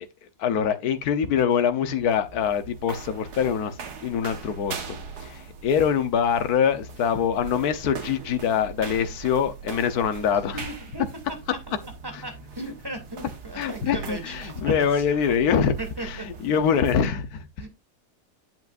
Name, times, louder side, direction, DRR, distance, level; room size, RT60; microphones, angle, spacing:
voice 1, 0.4-3.8 4.0-10.7 13.5-15.7 16.0-17.5, left 7 dB, 70° left, 1.5 m, -24 dB
sound 1, 1.8-17.1, right 5 dB, 80° right, 2.0 m, -40 dB
voice 2, 11.8-15.2 15.4-16.3 17.6-17.7, right 1 dB, 15° right, 2.8 m, -37 dB
9.1 x 8.3 x 2.6 m
omnidirectional pair, 1.7 m